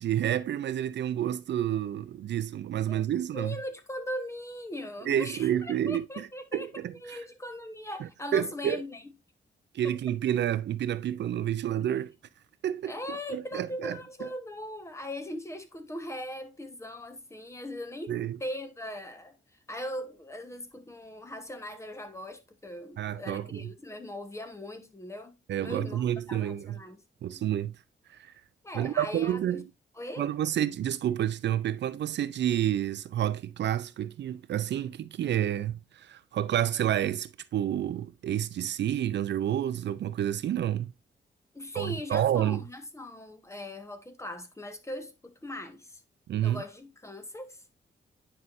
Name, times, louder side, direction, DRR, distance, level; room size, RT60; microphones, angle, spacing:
voice 1, 0.0-3.6 5.1-6.3 6.5-6.9 8.3-8.8 9.7-12.1 12.6-13.0 13.3-14.3 18.1-18.4 23.0-23.6 25.5-26.8 27.2-27.8 28.2-28.3 28.7-29.6 30.2-40.9 41.7-42.6 46.3-46.6, right 11 dB, 70° right, 0.5 m, -29 dB
voice 2, 3.3-6.7 7.0-9.1 9.8-9.9 12.8-19.4 19.7-25.3 25.6-27.0 27.3-27.5 28.6-29.7 29.9-30.3 41.5-46.0 46.4-47.6, left 1 dB, 15° left, 1.2 m, -40 dB
9.7 x 5.6 x 2.6 m
wide cardioid pair, 120°, 19 cm